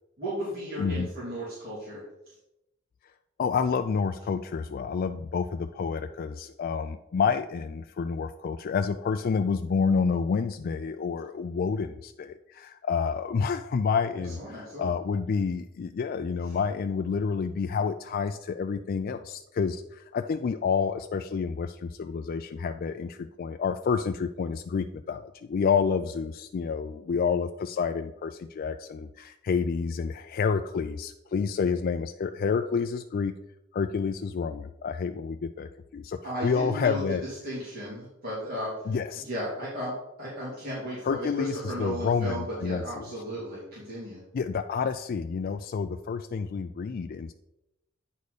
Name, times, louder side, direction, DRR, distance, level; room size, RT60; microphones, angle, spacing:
voice 1, 0.2-2.0 14.4-14.9 36.2-37.0 37.4-44.2, equal, 50° right, -8 dB, 2.8 m, -35 dB
voice 2, 0.8-1.1 3.4-33.3 33.7-37.2 38.9-39.2 41.0-43.0 44.3-47.3, left 5 dB, 45° left, 7 dB, 0.3 m, -29 dB
9.4 x 4.2 x 4.9 m, 0.88 s
head